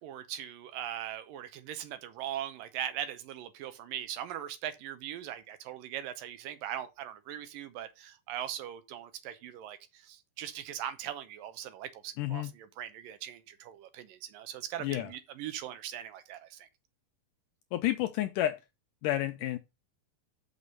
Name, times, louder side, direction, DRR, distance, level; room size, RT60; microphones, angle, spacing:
voice 1, 0.0-12.4 12.8-16.7, right 11 dB, 75° right, 2.4 m, -40 dB
voice 2, 12.2-12.5 14.8-15.1 17.7-18.6 19.0-19.6, left 14 dB, 80° left, 1.9 m, -30 dB
6.6 x 6.1 x 5.3 m
omnidirectional pair, 4.3 m